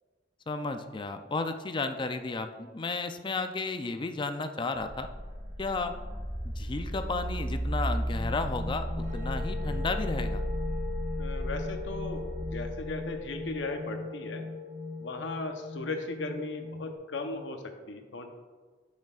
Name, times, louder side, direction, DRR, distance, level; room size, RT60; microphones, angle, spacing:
voice 1, 0.5-5.1 5.6-5.9 6.6-8.9 9.1-10.4, left 3 dB, 25° left, 8 dB, 0.4 m, -33 dB
sound 1, 4.8-13.5, equal, 25° right, 2.1 m, -34 dB
sound 2, 8.0-16.9, left 4 dB, 40° right, 1.1 m, -39 dB
voice 2, 11.2-14.5 15.0-18.3, left 2 dB, 75° left, 5 dB, 0.8 m, -37 dB
10.5 x 6.4 x 2.4 m, 1.4 s
head